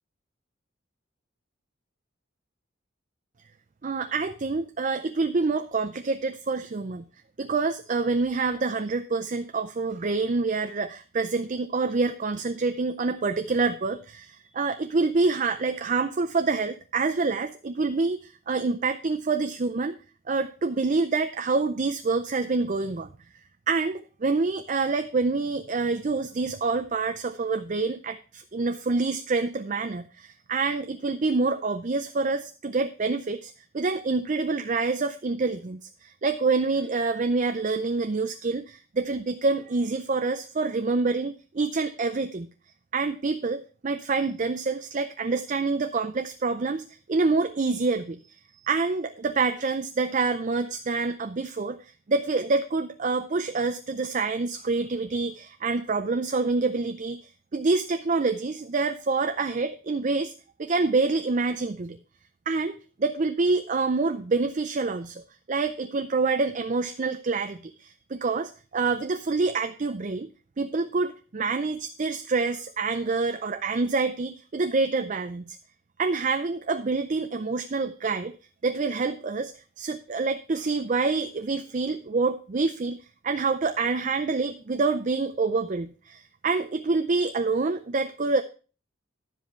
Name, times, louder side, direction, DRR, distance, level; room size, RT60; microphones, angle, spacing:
voice 1, 3.8-7.1 7.4-19.9 20.3-23.1 23.7-42.5 42.9-51.8 52.1-57.2 57.5-60.3 60.6-62.0 62.5-65.2 65.5-70.3 70.6-75.6 76.0-78.3 78.6-83.0 83.2-88.4, right 3 dB, 40° right, 8 dB, 0.5 m, -27 dB
10.5 x 7.3 x 4.5 m, 0.36 s
head